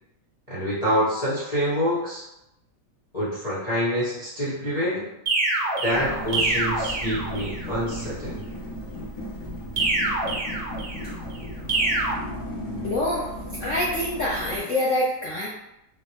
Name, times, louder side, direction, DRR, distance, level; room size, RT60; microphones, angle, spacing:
voice 1, 0.5-2.2 3.1-5.1 5.8-8.4, equal, 20° left, -10 dB, 1.0 m, -26 dB
sound 1, 5.3-7.7 9.8-11.1 11.7-12.1, right 2 dB, 60° right, 1.0 m, -26 dB
sound 2, 5.9-14.6, equal, 45° left, 0.3 m, -35 dB
voice 2, 12.8-13.3 13.6-15.5, left 1 dB, 75° left, -4 dB, 0.7 m, -25 dB
3.7 x 2.1 x 3.1 m, 0.84 s
omnidirectional pair, 1.9 m